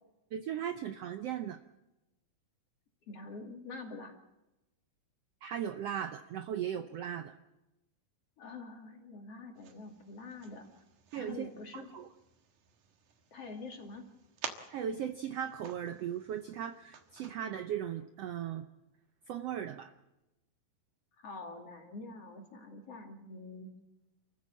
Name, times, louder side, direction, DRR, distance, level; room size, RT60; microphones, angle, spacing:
voice 1, 0.3-1.6 5.4-7.3 11.1-11.5 11.7-12.1 14.7-18.7 19.3-19.9, right 9 dB, 85° right, 8 dB, 1.3 m, -37 dB
voice 2, 3.1-4.2 8.4-10.7 11.2-11.9 13.3-14.0 21.2-23.7, left 3 dB, 45° left, 2 dB, 3.4 m, -46 dB
sound 1, 9.5-17.3, right 7 dB, 65° right, 2.9 m, -50 dB
29.0 x 14.5 x 7.3 m, 0.97 s
omnidirectional pair, 4.0 m